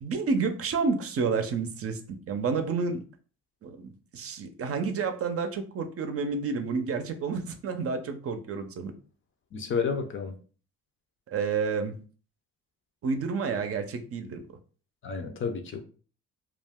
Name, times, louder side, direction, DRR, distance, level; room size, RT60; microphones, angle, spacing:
voice 1, 0.0-3.0 3.6-8.9 11.3-12.0 13.0-14.4, right 5 dB, 50° right, 0.5 m, -30 dB
voice 2, 9.5-10.4 15.0-15.8, left 5 dB, 40° left, 0.5 m, -30 dB
2.4 x 2.1 x 3.4 m
cardioid pair, 90°, 30 cm